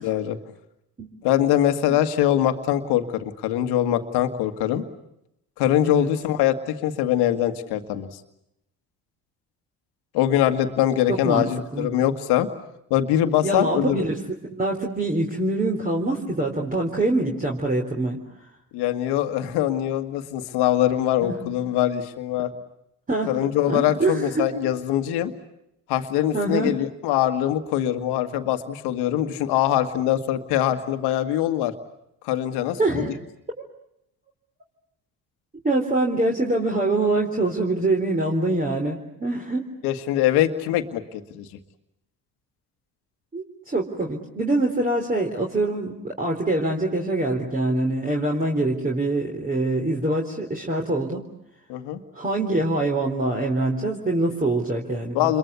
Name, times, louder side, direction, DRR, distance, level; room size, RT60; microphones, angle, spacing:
voice 1, 0.0-0.4 1.2-4.8 5.6-8.2 10.1-12.5 12.9-14.0 18.7-22.5 23.3-25.3 25.9-31.7 32.2-33.1 39.8-41.4 51.7-52.0 55.1-55.4, left 12 dB, 85° left, 8 dB, 1.8 m, -23 dB
voice 2, 11.1-11.9 13.4-14.2 14.5-18.2 21.2-21.6 23.1-23.3 23.7-24.5 26.3-26.7 32.8-33.2 35.6-39.6 43.3-51.2 52.1-55.3, right 2 dB, 20° right, 0 dB, 3.9 m, -24 dB
29.0 x 22.5 x 8.3 m, 0.82 s
supercardioid pair, 70°, 38 cm